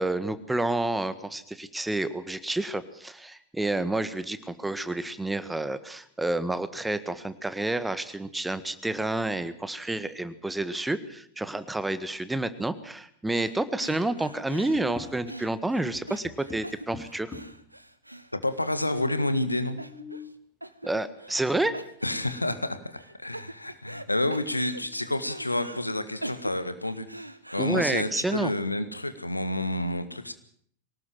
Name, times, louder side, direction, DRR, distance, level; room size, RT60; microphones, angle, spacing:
voice 1, 0.0-17.3 20.8-21.8 27.6-28.5, right 2 dB, 5° right, 13 dB, 1.6 m, -29 dB
sound 1, 13.3-13.5 13.8-19.0 19.3-19.4 19.8-20.3 20.6-21.5 21.7-22.5 23.0-24.0 24.3-25.8 26.2-28.3, right 1 dB, 85° right, 1.2 m, -43 dB
sound 2, 14.7-15.6 15.9-17.7 18.5-18.6 18.8-18.9 19.6-20.5 22.2-22.3 22.8-23.3 23.7-23.8 24.3-25.2, left 4 dB, 15° left, 3.8 m, -46 dB
voice 2, 18.3-19.8 22.0-27.1 27.5-30.3, left 1 dB, 85° left, 11 dB, 1.7 m, -29 dB
23.5 x 18.5 x 7.8 m, 0.64 s
figure-of-eight pair, 90°, 0 cm